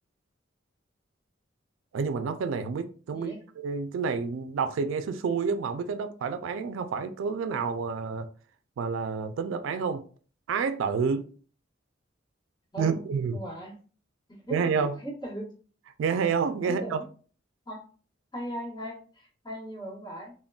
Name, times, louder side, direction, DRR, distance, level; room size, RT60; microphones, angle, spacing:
voice 1, 1.9-8.3 8.8-10.0 10.5-11.3 12.8-13.4 14.5-15.0 16.0-17.0, right 5 dB, 80° right, 0.3 m, -29 dB
voice 2, 3.1-3.4 12.7-13.0 13.3-13.8 14.3-15.5 16.6-17.0 17.7-17.8 18.3-20.3, right 1 dB, 20° left, 1.2 m, -38 dB
3.6 x 2.1 x 2.3 m
head